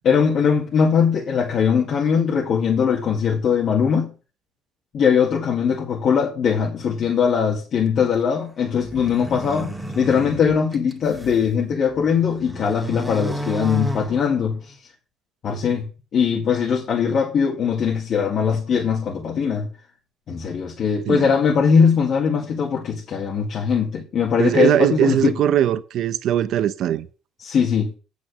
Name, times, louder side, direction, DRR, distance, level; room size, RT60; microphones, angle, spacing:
voice 1, 0.0-4.1 4.9-14.8 15.4-15.9 16.1-19.7 20.3-25.4 27.4-27.9, left 6 dB, 55° left, 1.9 m, -20 dB
sound 1, 8.8-11.4 11.9-14.7, equal, 5° right, 2.1 m, -32 dB
voice 2, 24.4-27.1, right 11 dB, 65° right, 0.7 m, -20 dB
8.7 x 6.2 x 6.6 m
supercardioid pair, 85°, 0 cm